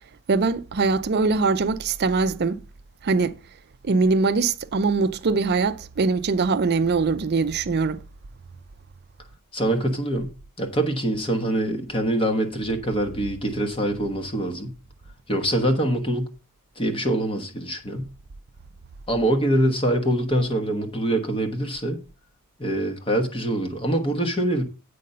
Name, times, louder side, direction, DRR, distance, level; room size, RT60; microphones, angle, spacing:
voice 1, 0.3-2.6 3.0-3.3 3.8-8.0, right 4 dB, 45° right, 0.5 m, -22 dB
voice 2, 9.5-10.3 10.6-14.7 15.3-16.3 16.8-18.1 19.1-22.0 22.6-24.6, right 1 dB, 25° left, 1.1 m, -24 dB
8.4 x 5.3 x 5.4 m
head